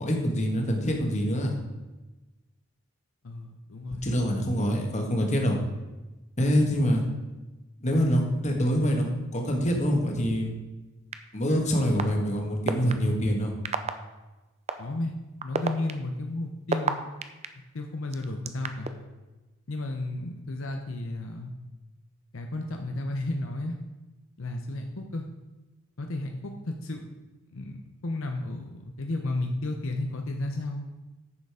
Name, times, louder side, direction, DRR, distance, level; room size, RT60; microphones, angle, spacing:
voice 1, 0.0-1.5 3.9-5.6 6.4-7.0 7.8-9.1 9.3-10.5 11.3-13.5, equal, 35° left, 1 dB, 1.7 m, -25 dB
voice 2, 3.2-4.1 14.8-15.1 15.4-17.0 17.7-18.9 19.7-21.5 22.3-23.8 24.4-25.2 26.0-27.0 27.5-30.8, left 2 dB, 70° left, 3 dB, 0.8 m, -33 dB
sound 1, 11.1-11.2 12.0-12.1 12.7-12.9 13.6-13.9 14.7-14.8 15.4-17.5 18.1-18.9, right 5 dB, 30° right, 0.6 m, -27 dB
10.0 x 6.8 x 4.9 m, 1.1 s
head